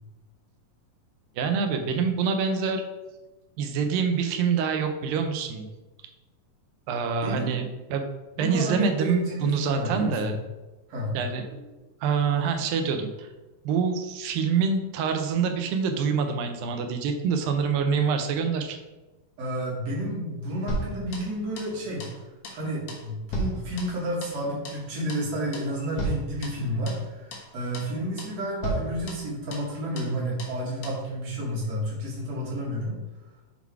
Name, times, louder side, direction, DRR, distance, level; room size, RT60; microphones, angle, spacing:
voice 1, 1.4-2.8 3.6-5.7 6.9-7.6 7.9-8.0 8.4-10.4 11.1-11.7 12.0-13.3 13.6-18.8, right 6 dB, 85° right, 6 dB, 2.5 m, -26 dB
voice 2, 7.2-7.6 8.4-10.3 10.9-11.2 19.4-22.1 22.5-33.0, equal, 55° right, -5 dB, 2.9 m, -31 dB
sound 1, 20.7-21.7 22.0-22.2 22.4-22.6 22.9-24.4 24.6-24.8 25.1-25.3 25.5-25.7 26.0-27.0 27.3-27.5 27.7-27.9 28.2-28.4 28.6-29.7 30.0-30.1 30.4-30.6 30.8-31.0, right 1 dB, 60° left, 1.7 m, -34 dB
7.1 x 4.0 x 4.7 m, 1.1 s
omnidirectional pair, 4.0 m